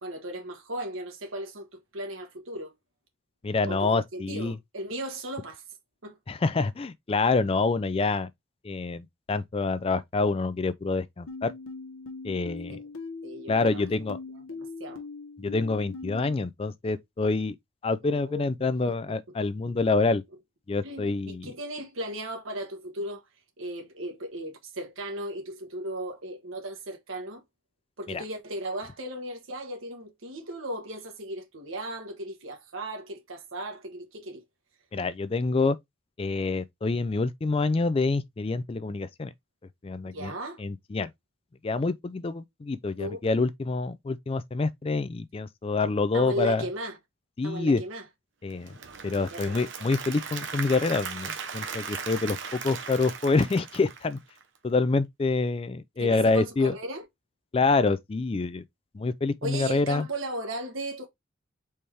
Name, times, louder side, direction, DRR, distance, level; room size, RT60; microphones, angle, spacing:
voice 1, 0.0-2.7 3.7-5.6 6.0-6.2 12.7-12.8 13.2-13.8 14.5-15.0 18.0-18.5 19.6-19.7 20.8-23.2 23.6-27.4 28.0-34.4 40.0-40.6 43.0-43.4 46.1-47.0 47.4-48.0 49.3-49.6 56.0-57.0 59.4-61.1, right 1 dB, 75° right, 1.2 m, -36 dB
voice 2, 3.4-4.6 6.3-8.3 8.6-11.5 12.2-12.8 13.5-14.2 15.4-17.6 17.8-20.2 20.7-21.5 28.1-28.2 34.9-35.8 36.2-39.3 39.8-40.3 40.6-41.1 41.6-46.6 47.4-47.8 48.4-48.8 49.0-54.2 54.6-56.7 57.5-58.6 58.9-60.1, left 3 dB, 25° left, 0.3 m, -27 dB
sound 1, 11.3-16.3, left 4 dB, 80° left, 0.9 m, -41 dB
Applause / Crowd, 48.5-54.6, right 6 dB, 60° right, 0.9 m, -38 dB
4.3 x 3.5 x 3.2 m
head